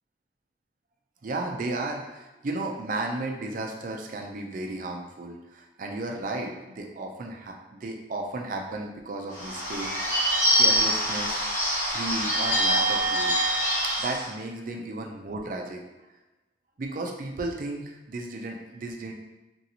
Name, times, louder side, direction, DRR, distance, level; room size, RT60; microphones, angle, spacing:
voice 1, 1.2-7.5 7.8-11.6 11.9-13.4 14.0-15.8 16.8-19.1, right 2 dB, 45° right, 1 dB, 0.4 m, -34 dB
Bird / Bell, 9.3-14.3, equal, 45° left, 1.1 m, -25 dB
3.0 x 2.7 x 2.8 m, 1.1 s
head